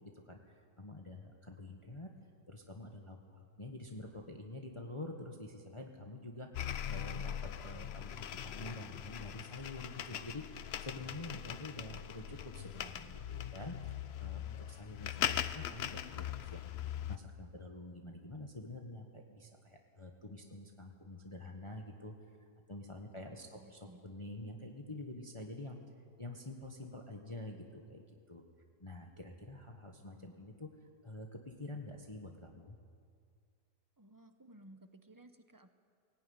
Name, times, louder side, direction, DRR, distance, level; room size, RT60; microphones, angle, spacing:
voice 1, 0.0-2.1 2.5-22.1 22.7-25.8 26.2-28.4 28.8-30.7 31.0-32.8, left 2 dB, 20° left, 2 dB, 1.3 m, -47 dB
sound 1, 6.5-17.2, left 9 dB, 65° left, 0.6 m, -41 dB
voice 2, 23.0-24.1 34.0-35.7, right 1 dB, 20° right, 8 dB, 0.6 m, -58 dB
19.0 x 17.0 x 9.6 m, 2.2 s
omnidirectional pair, 1.8 m